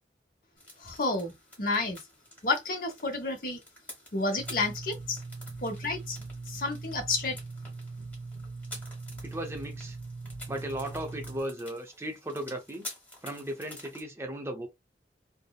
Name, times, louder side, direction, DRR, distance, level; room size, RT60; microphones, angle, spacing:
sound 1, 0.6-14.0, left 1 dB, 10° left, 1.0 m, -49 dB
voice 1, 0.8-2.0 2.4-3.6 4.1-5.2 5.6-6.2 6.5-7.4, left 3 dB, 55° left, 0.8 m, -30 dB
sound 2, 4.4-11.4, right 3 dB, 90° right, 0.5 m, -41 dB
voice 2, 9.2-10.0 10.5-12.9 13.2-14.7, right 1 dB, 15° right, 0.5 m, -36 dB
2.8 x 2.0 x 2.2 m
head